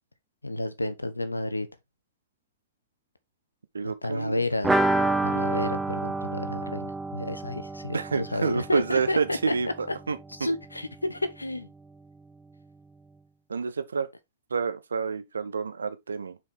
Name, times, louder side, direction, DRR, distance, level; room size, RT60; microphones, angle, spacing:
voice 1, 0.4-1.7 3.8-4.8 5.2-9.5 9.9-10.0 10.4-11.7, left 2 dB, 85° left, 1.0 m, -31 dB
voice 2, 3.7-4.4 7.9-10.2 13.5-14.1 14.5-16.4, right 5 dB, 75° right, 0.9 m, -28 dB
sound 1, 4.6-10.2 10.5-10.6 10.9-11.0, right 2 dB, 5° right, 0.7 m, -29 dB
5.8 x 4.6 x 3.7 m
figure-of-eight pair, 105°, 0 cm